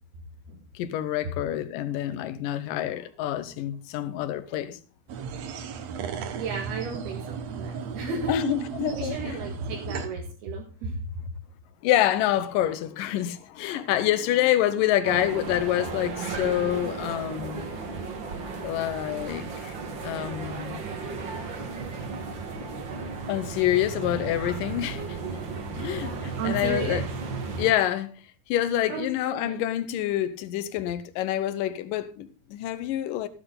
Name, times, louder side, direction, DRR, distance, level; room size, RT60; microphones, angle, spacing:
voice 1, 0.7-4.8 8.3-9.4 11.8-17.6 18.6-19.7 20.0-20.8 23.3-25.2 25.8-27.0 27.6-28.2 28.5-33.3, left 12 dB, 75° left, 2.4 m, -27 dB
sound 1, 5.1-10.1, right 6 dB, 65° right, 1.8 m, -35 dB
voice 2, 6.3-8.4 8.9-11.0 26.4-27.0 28.9-29.6, right 4 dB, 80° right, 4.0 m, -34 dB
sound 2, 15.0-27.7, right 4 dB, 50° right, 1.5 m, -34 dB
14.5 x 10.0 x 3.9 m
omnidirectional pair, 4.4 m